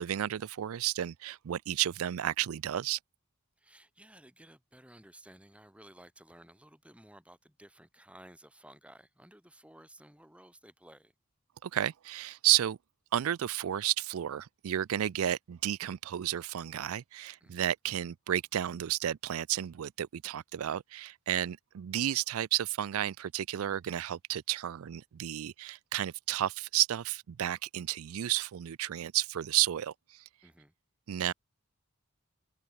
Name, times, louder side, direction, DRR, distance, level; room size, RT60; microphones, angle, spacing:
voice 1, 0.0-3.0 11.6-12.8 13.1-30.2 31.1-31.3, right 12 dB, 75° right, 0.4 m, -32 dB
voice 2, 3.6-11.1 17.4-17.7 21.3-21.5 30.4-30.7, right 1 dB, 5° right, 3.7 m, -56 dB
head